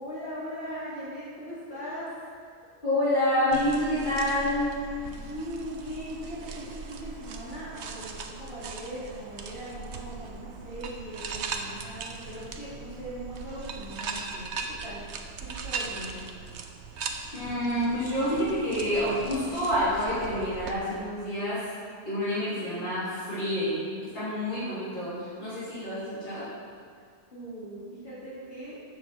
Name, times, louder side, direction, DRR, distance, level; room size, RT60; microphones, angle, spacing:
voice 1, 0.0-2.1 5.0-14.5 14.8-15.0 15.4-16.2 27.3-28.8, equal, 60° left, -10 dB, 3.7 m, -39 dB
voice 2, 2.8-4.7 17.3-21.7 22.0-26.5, left 1 dB, 45° left, -11 dB, 3.4 m, -28 dB
sound 1, 3.5-20.7, right 5 dB, 70° right, 1.1 m, -39 dB
13.5 x 7.8 x 4.5 m, 2.1 s
omnidirectional pair, 1.2 m